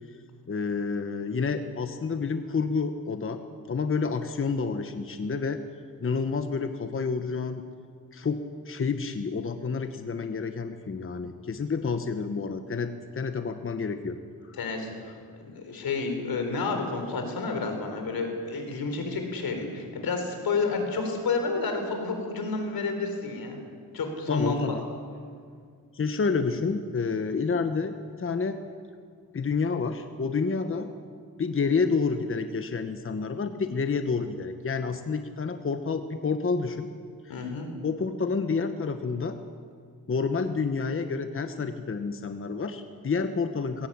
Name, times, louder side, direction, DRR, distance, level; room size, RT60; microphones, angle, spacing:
voice 1, 0.5-3.4 3.7-5.6 6.0-7.6 8.1-14.2 24.3-24.8 25.9-28.6 29.3-30.9 31.4-36.9 37.2-37.4 37.8-39.4 40.1-43.9, left 4 dB, 35° left, 8 dB, 1.1 m, -29 dB
voice 2, 14.6-23.6 23.9-24.7 37.3-37.7, left 4 dB, 85° left, 5 dB, 4.1 m, -30 dB
21.0 x 17.5 x 8.8 m, 2.1 s
wide cardioid pair, 110°, 35 cm